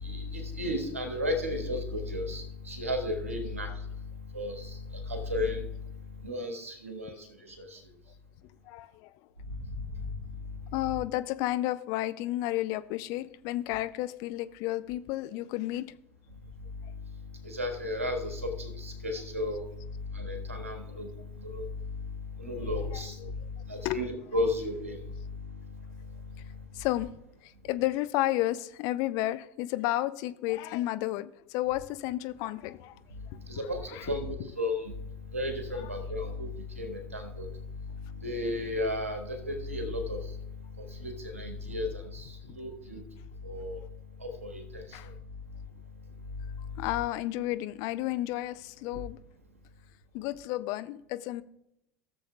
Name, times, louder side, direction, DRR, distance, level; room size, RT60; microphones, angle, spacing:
voice 1, 0.0-3.7 4.3-4.8 5.1-5.6 6.2-7.3 7.6-7.8 9.7-9.8 17.4-19.6 20.1-21.1 21.4-21.7 22.4-23.2 23.7-25.0 33.5-34.9 35.3-36.5 36.8-37.5 38.2-40.2 40.8-43.0 43.4-43.8 44.2-44.8, left 1 dB, 90° right, 1.4 m, -33 dB
voice 2, 8.7-9.1 10.7-15.9 22.9-23.3 23.8-24.0 26.7-33.0 33.9-34.1 34.4-34.5 44.9-45.1 46.8-49.2 50.1-51.4, left 16 dB, 50° left, 0.4 m, -32 dB
16.5 x 7.0 x 2.3 m
figure-of-eight pair, 80°, 7 cm